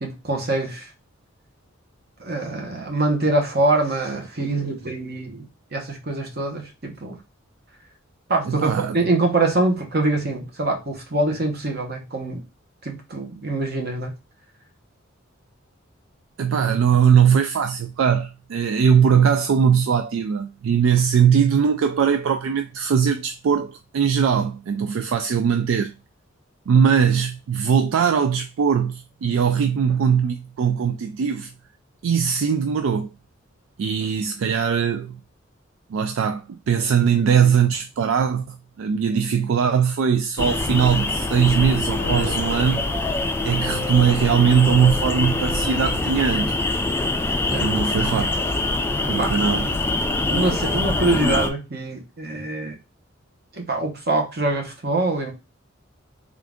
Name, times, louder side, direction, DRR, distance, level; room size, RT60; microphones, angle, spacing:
voice 1, 0.0-0.9 2.2-5.4 5.7-7.2 8.3-12.4 12.8-14.1 47.5-47.7 49.2-49.3 50.3-52.8 53.5-55.3, right 2 dB, 55° right, 1.0 m, -24 dB
voice 2, 8.5-9.0 16.4-25.9 26.7-31.5 32.0-33.1 33.8-35.2 35.9-42.9 43.4-46.5 47.6-48.3 49.1-49.7, right 7 dB, 75° right, 0.3 m, -20 dB
sound 1, 40.4-51.5, left 2 dB, 10° left, 0.3 m, -24 dB
sound 2, 42.0-43.9, left 3 dB, 65° left, 0.6 m, -35 dB
3.7 x 2.4 x 3.5 m
head